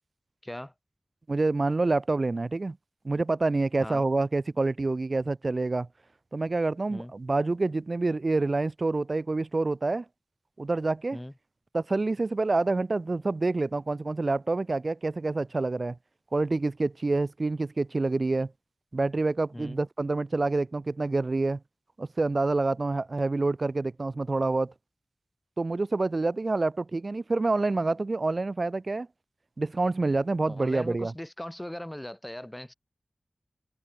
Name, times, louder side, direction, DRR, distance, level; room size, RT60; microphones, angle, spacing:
voice 1, 0.4-0.7 3.8-4.0 6.9-7.1 11.1-11.3 19.5-19.8 30.5-32.7, left 1 dB, 15° left, 7.6 m, -39 dB
voice 2, 1.3-2.8 3.0-5.9 6.3-10.0 10.6-11.2 11.7-16.0 16.3-18.5 18.9-21.6 22.0-24.7 25.6-29.1 29.6-31.1, right 3 dB, 55° right, 3.9 m, -27 dB
cardioid pair, 45°, 0 cm